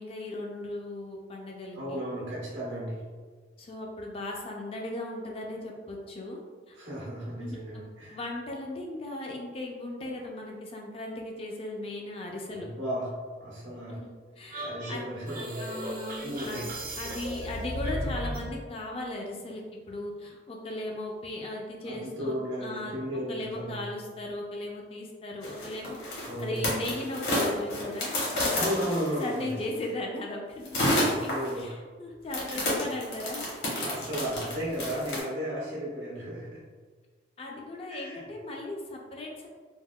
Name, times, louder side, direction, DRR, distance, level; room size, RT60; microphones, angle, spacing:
voice 1, 0.0-2.0 3.6-6.4 6.7-6.8 7.4-12.7 13.9-14.0 14.4-15.0 15.6-28.7 29.1-30.9 31.2-31.3 31.6-33.4 37.4-39.5, left 1 dB, 30° left, 0 dB, 0.3 m, -37 dB
voice 2, 1.8-3.1 6.8-8.2 12.5-13.1 13.4-14.0 14.6-15.8 16.2-16.6 21.9-23.8 26.2-26.6 28.5-29.5 30.9-31.8 32.5-32.7 33.8-36.6 37.9-38.3, equal, 90° right, -6 dB, 1.1 m, -34 dB
sound 1, 14.5-18.5, equal, 50° right, 0.5 m, -35 dB
sound 2, 25.4-29.5 30.7-31.6 32.3-35.2, left 1 dB, 70° left, 1.0 m, -29 dB
3.4 x 2.1 x 2.2 m, 1.5 s
head